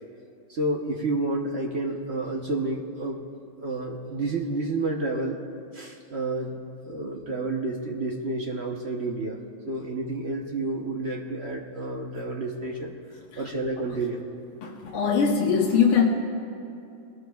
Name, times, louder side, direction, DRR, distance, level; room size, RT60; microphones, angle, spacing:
voice 1, 0.5-3.2 3.6-5.4 5.7-9.4 9.7-12.9 13.4-14.3, right 2 dB, 50° right, 0 dB, 0.8 m, -30 dB
voice 2, 14.6-16.0, left 6 dB, 85° left, -1 dB, 2.1 m, -22 dB
22.5 x 18.5 x 2.3 m, 2.5 s
omnidirectional pair, 2.3 m